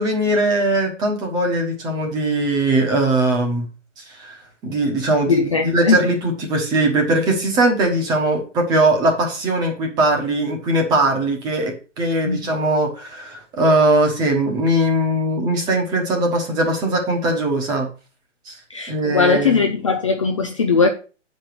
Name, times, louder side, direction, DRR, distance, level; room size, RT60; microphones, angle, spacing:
voice 1, 0.0-3.7 4.1-4.4 4.6-17.9 18.5-18.6 18.9-19.6, right 1 dB, 10° right, 1.2 m, -20 dB
voice 2, 5.3-6.0 12.3-12.4 18.7-20.9, left 5 dB, 25° left, 0.5 m, -19 dB
8.0 x 5.3 x 6.1 m
hypercardioid pair, 165°, 37 cm